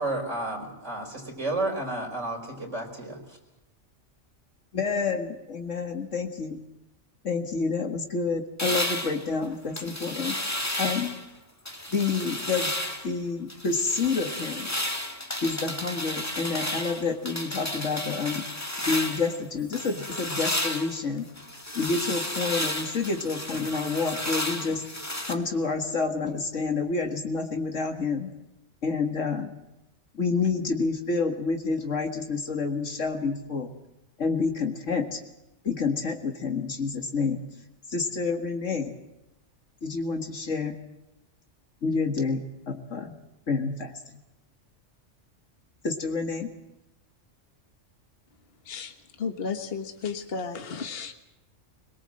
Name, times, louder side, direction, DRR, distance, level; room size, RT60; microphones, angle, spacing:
voice 1, 0.0-3.2, right 2 dB, 75° right, 1 dB, 5.4 m, -31 dB
voice 2, 4.7-6.6 7.2-11.2 11.9-12.7 13.0-14.7 15.4-18.5 18.9-21.3 21.7-24.8 25.3-28.3 28.8-29.5 30.1-33.7 34.2-35.2 35.6-37.4 37.9-38.9 39.8-40.8 41.8-43.1 43.5-43.9 45.8-46.5, left 4 dB, 75° left, 4 dB, 2.2 m, -28 dB
sound 1, 8.6-11.3 11.7-13.1 13.5-19.4 19.7-25.3, left 1 dB, 15° left, 1.8 m, -32 dB
voice 3, 48.6-51.1, left 5 dB, 50° left, 6 dB, 1.6 m, -33 dB
22.5 x 22.5 x 7.7 m, 0.95 s
omnidirectional pair, 1.3 m